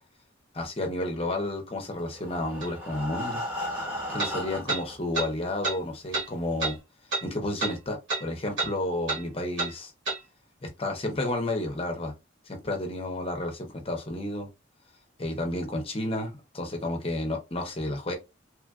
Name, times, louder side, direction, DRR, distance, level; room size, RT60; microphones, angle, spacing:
voice 1, 0.5-3.4 4.1-6.8 7.2-9.9 10.6-12.1 12.5-14.5 15.2-18.1, left 1 dB, 30° left, 0.7 m, -31 dB
Breathing, 2.0-5.0 5.7-5.8 6.2-6.3 6.7-6.8, left 1 dB, 10° right, 0.9 m, -35 dB
sound 1, 2.6-2.7 4.2-4.3 4.7-4.8 5.1-5.3 5.6-5.8 6.1-6.3 6.6-6.7 7.1-7.3 7.6-7.8 8.1-8.2 8.6-8.7 9.1-9.2 9.6-9.7 10.1-10.2, right 3 dB, 65° right, 1.4 m, -29 dB
3.0 x 2.4 x 2.3 m
head